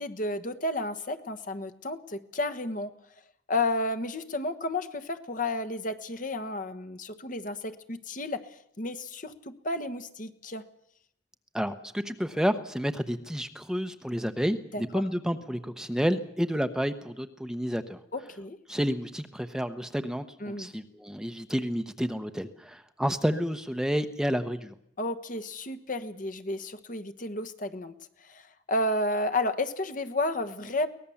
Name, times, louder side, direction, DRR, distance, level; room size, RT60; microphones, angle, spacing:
voice 1, 0.0-2.9 3.5-8.5 8.8-10.6 14.7-14.8 18.1-18.6 20.4-20.7 25.0-27.9 28.3-28.4 28.7-30.9, left 2 dB, 45° left, 10 dB, 1.3 m, -32 dB
voice 2, 11.5-18.0 18.7-24.7, equal, 5° right, 9 dB, 0.9 m, -30 dB
23.0 x 18.5 x 7.2 m, 0.71 s
head